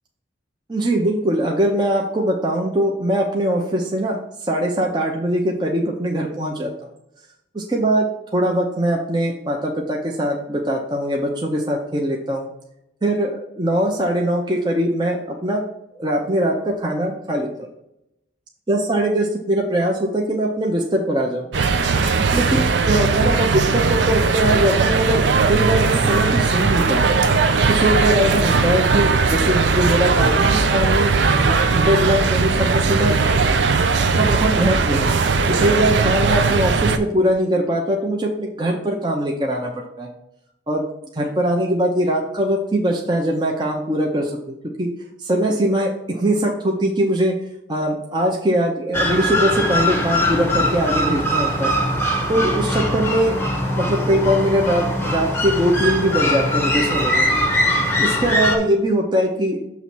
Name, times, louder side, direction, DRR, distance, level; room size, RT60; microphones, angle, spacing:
voice 1, 0.7-6.7 7.5-12.5 13.0-15.6 15.9-17.7 18.7-21.5 22.3-25.2 25.5-27.2 27.7-31.1 31.4-33.2 34.2-35.1 35.6-39.7 40.0-40.1 40.7-40.8 41.1-44.9 45.2-47.3 47.7-51.7 52.3-53.4 53.8-57.3 58.0-59.7, right 1 dB, 25° right, 0 dB, 0.6 m, -21 dB
sound 1, 21.5-37.0, right 4 dB, 70° right, 0.5 m, -18 dB
sound 2, 48.9-58.6, left 1 dB, 10° left, 0.7 m, -21 dB
7.0 x 3.1 x 6.0 m, 0.82 s
head